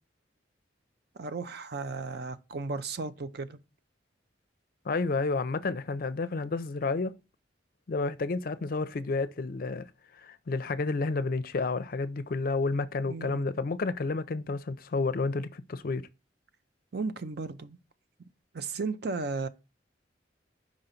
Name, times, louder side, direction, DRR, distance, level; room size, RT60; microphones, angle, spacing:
voice 1, 1.1-3.6 13.1-13.4 16.9-17.8 18.5-19.5, right 4 dB, 55° right, 0.5 m, -35 dB
voice 2, 4.9-7.2 7.9-9.9 10.2-16.1, left 3 dB, 50° left, 0.5 m, -30 dB
5.0 x 3.9 x 5.6 m
head